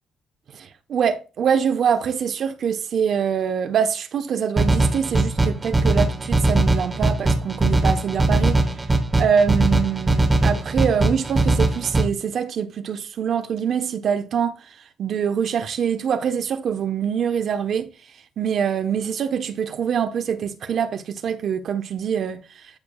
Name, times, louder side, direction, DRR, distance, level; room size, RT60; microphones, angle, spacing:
voice 1, 0.5-8.6 9.2-14.6 15.0-17.9 18.4-22.4, right 7 dB, 60° right, 1.1 m, -24 dB
sound 1, 4.6-12.0, right 2 dB, 25° right, 2.0 m, -20 dB
14.0 x 4.7 x 2.4 m
cardioid pair, 90°, 0 cm